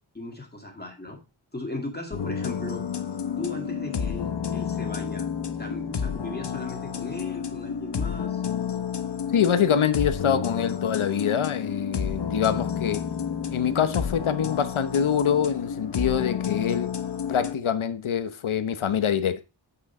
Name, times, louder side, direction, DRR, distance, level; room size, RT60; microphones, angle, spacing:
voice 1, 0.1-1.2 1.5-2.9 3.4-5.3 5.6-8.4, left 2 dB, 20° left, 2.1 m, -37 dB
sound 1, 2.1-17.5, left 7 dB, 60° left, 1.0 m, -30 dB
voice 2, 9.3-13.0 13.5-16.9 17.3-19.4, left 8 dB, 90° left, 1.0 m, -25 dB
8.1 x 6.4 x 4.3 m
wide cardioid pair, 115°, 47 cm